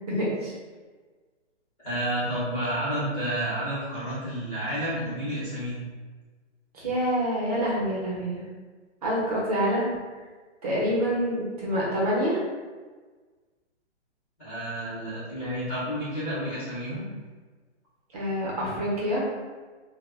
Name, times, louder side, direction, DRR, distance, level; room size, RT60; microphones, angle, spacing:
voice 1, 0.1-0.5 6.7-8.4 9.0-9.9 10.6-12.4 18.1-19.2, equal, 35° right, -5 dB, 0.7 m, -26 dB
voice 2, 1.8-5.8 11.0-11.1 14.4-17.0, right 1 dB, 10° left, -12 dB, 0.5 m, -30 dB
2.1 x 2.1 x 3.2 m, 1.4 s
hypercardioid pair, 160°, 36 cm